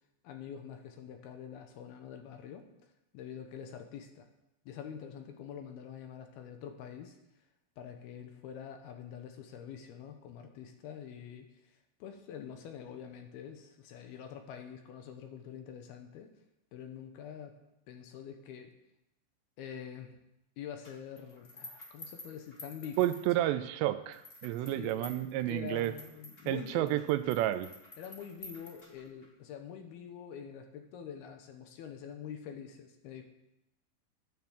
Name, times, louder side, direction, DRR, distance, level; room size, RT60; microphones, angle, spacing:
voice 1, 0.2-2.7 3.1-4.3 4.7-7.2 7.8-16.3 16.7-17.6 17.9-18.7 19.6-20.1 20.6-23.0 24.7-27.0 28.0-33.2, left 8 dB, 75° left, 5 dB, 2.7 m, -46 dB
sound 1, 20.8-23.6 24.1-29.3, left 2 dB, 40° left, 0.8 m, -51 dB
voice 2, 23.0-25.9 26.5-27.7, right 14 dB, 85° right, 11 dB, 2.7 m, -30 dB
10.5 x 9.4 x 7.3 m, 0.89 s
omnidirectional pair, 5.1 m